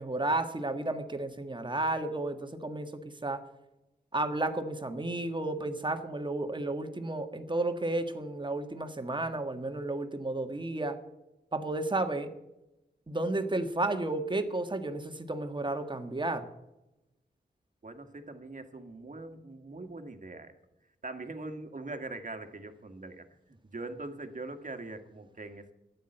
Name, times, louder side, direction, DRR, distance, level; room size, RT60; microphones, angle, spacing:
voice 1, 0.0-3.4 4.1-11.0 11.5-12.3 13.1-16.5, right 2 dB, 25° right, 7 dB, 1.6 m, -32 dB
voice 2, 17.8-20.5 21.0-25.7, right 2 dB, 45° right, 7 dB, 1.7 m, -42 dB
13.0 x 9.4 x 7.9 m, 0.93 s
cardioid pair, 70°, 18 cm